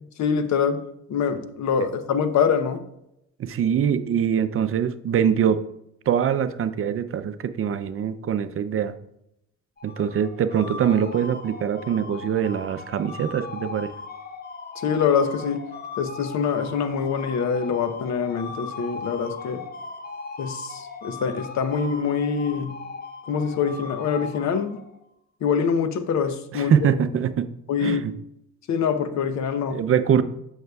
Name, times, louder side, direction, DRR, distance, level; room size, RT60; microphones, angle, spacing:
voice 1, 0.2-0.8 1.1-2.8 14.8-15.7 16.0-19.6 20.4-22.8 23.3-24.8 25.4-26.7 27.7-28.0 28.7-29.8, left 6 dB, 65° left, 9 dB, 0.8 m, -24 dB
voice 2, 3.4-5.6 6.1-8.9 9.8-13.9 26.5-27.5 27.8-28.1 29.7-30.2, right 8 dB, 45° right, 11 dB, 0.5 m, -23 dB
sound 1, 9.8-25.0, left 3 dB, 30° left, 0.9 m, -38 dB
9.1 x 6.5 x 2.3 m, 0.79 s
cardioid pair, 90°, 30 cm